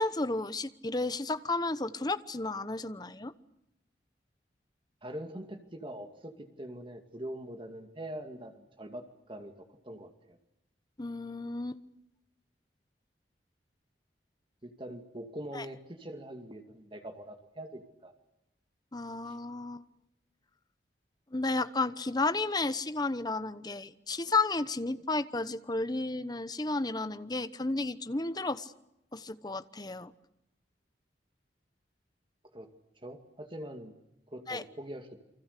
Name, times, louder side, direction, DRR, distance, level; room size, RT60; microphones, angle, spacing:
voice 1, 0.0-3.3 11.0-11.8 15.5-15.6 18.9-19.8 21.3-28.7 29.1-30.1 34.5-34.6, left 3 dB, 25° left, 12 dB, 1.0 m, -32 dB
voice 2, 5.0-10.4 14.6-18.1 19.3-19.4 32.5-32.7 33.0-33.9 34.3-35.2, right 1 dB, 30° right, 5 dB, 2.3 m, -43 dB
29.5 x 25.0 x 6.8 m, 0.85 s
head